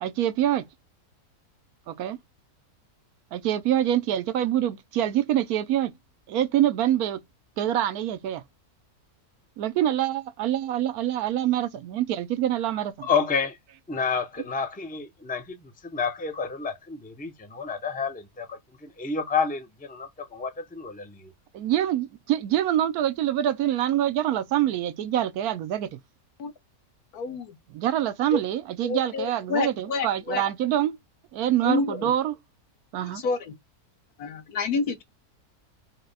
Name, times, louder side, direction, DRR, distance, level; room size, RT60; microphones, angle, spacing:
voice 1, 0.0-0.7 1.9-2.2 3.3-5.9 6.3-7.2 7.6-8.4 9.6-13.1 21.5-26.0 27.7-31.0 31.3-32.4 32.9-33.2, right 11 dB, 80° right, 1.1 m, -25 dB
voice 2, 13.0-13.6 13.9-21.3, left 5 dB, 10° left, 0.4 m, -30 dB
voice 3, 27.1-27.5 28.3-28.4 28.8-30.4 31.6-32.1 33.1-33.5 34.2-35.0, left 4 dB, 75° left, 1.5 m, -28 dB
5.7 x 2.2 x 3.9 m
omnidirectional pair, 1.6 m